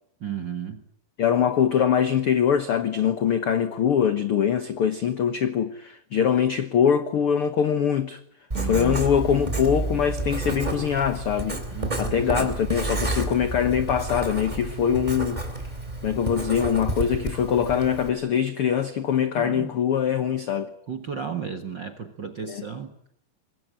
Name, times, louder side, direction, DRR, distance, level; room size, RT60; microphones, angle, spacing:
voice 1, 0.2-0.8 8.5-9.0 11.7-12.5 19.2-19.7 20.9-23.0, right 7 dB, 55° right, 1.3 m, -34 dB
voice 2, 1.2-8.2 8.6-11.6 12.0-15.4 16.0-20.7 22.5-22.6, left 8 dB, 80° left, 1.2 m, -23 dB
Writing, 8.5-18.1, right 2 dB, 10° right, 3.3 m, -30 dB
25.0 x 21.5 x 8.9 m
omnidirectional pair, 4.2 m